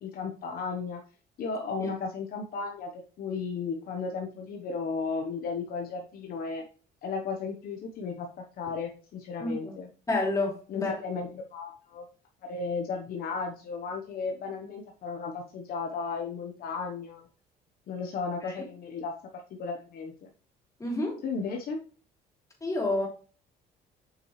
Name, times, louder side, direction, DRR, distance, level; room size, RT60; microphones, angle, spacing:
voice 1, 0.0-1.0 1.4-6.6 7.0-9.9 10.7-12.0 12.4-17.2 17.9-19.1 19.6-20.3 21.2-21.8, left 4 dB, 60° left, 1 dB, 1.1 m, -34 dB
voice 2, 9.4-9.8 10.1-10.9 18.4-18.6 20.8-21.2 22.6-23.1, left 2 dB, 20° left, -1 dB, 3.3 m, -29 dB
7.6 x 6.0 x 3.2 m, 0.38 s
cardioid pair, 110°, 17 cm